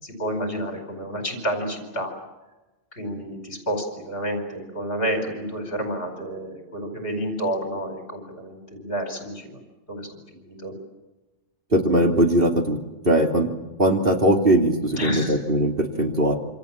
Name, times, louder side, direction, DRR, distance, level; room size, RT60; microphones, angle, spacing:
voice 1, 0.0-2.1 2.9-9.6 9.9-10.7 14.9-15.4, equal, 50° left, 3 dB, 5.0 m, -30 dB
voice 2, 11.7-12.8 13.0-13.5 13.8-16.3, right 1 dB, 45° right, 2 dB, 3.2 m, -20 dB
27.0 x 27.0 x 7.5 m, 1.1 s
omnidirectional pair, 1.3 m